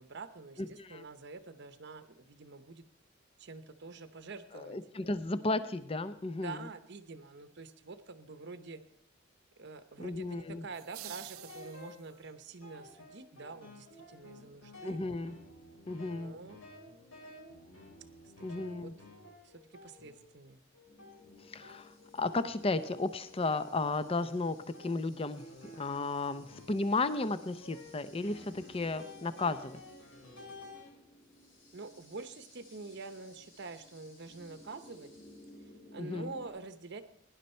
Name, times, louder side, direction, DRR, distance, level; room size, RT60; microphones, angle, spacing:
voice 1, 0.0-2.8 3.4-4.8 6.4-8.8 9.6-15.0 16.0-16.6 18.5-18.9 19.4-20.6 31.7-35.1 35.9-37.0, right 3 dB, 55° right, 11 dB, 0.8 m, -46 dB
voice 2, 0.6-1.0 4.5-6.7 10.0-10.7 14.8-15.3 15.9-16.3 18.4-18.9 21.4-25.5 25.7-29.8 36.0-36.3, left 3 dB, 25° left, 13 dB, 0.6 m, -34 dB
sound 1, 10.7-12.3, right 15 dB, 90° right, 0.6 m, -49 dB
sound 2, 11.0-12.2 12.6-20.4 20.7-30.9, left 2 dB, 80° left, 4.6 m, -53 dB
sound 3, 20.9-36.5, left 1 dB, 60° left, 4.6 m, -58 dB
17.0 x 10.5 x 4.4 m, 0.73 s
head